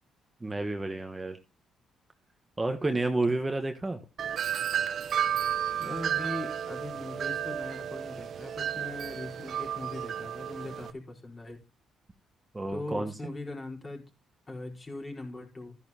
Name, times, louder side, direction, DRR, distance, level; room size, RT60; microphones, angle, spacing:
voice 1, 0.4-1.4 2.6-4.0 12.5-13.1, right 2 dB, 20° right, 1.2 m, -30 dB
Wind chime, 4.2-10.9, right 9 dB, 60° right, 0.7 m, -32 dB
voice 2, 5.8-11.6 12.7-14.0 14.5-15.8, left 2 dB, 30° left, 4.3 m, -40 dB
13.5 x 10.5 x 2.9 m
cardioid pair, 90°, 0 cm